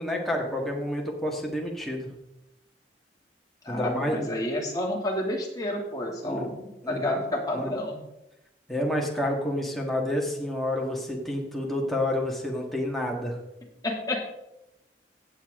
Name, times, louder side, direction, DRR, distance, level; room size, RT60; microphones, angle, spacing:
voice 1, 0.0-2.1 3.7-4.3 6.2-6.5 6.8-7.2 7.5-7.7 8.7-13.4, left 1 dB, ahead, -1 dB, 1.9 m, -29 dB
voice 2, 3.6-6.5 6.9-8.0 13.8-14.3, left 1 dB, 20° left, -2 dB, 2.6 m, -30 dB
16.0 x 7.5 x 3.8 m, 0.90 s
head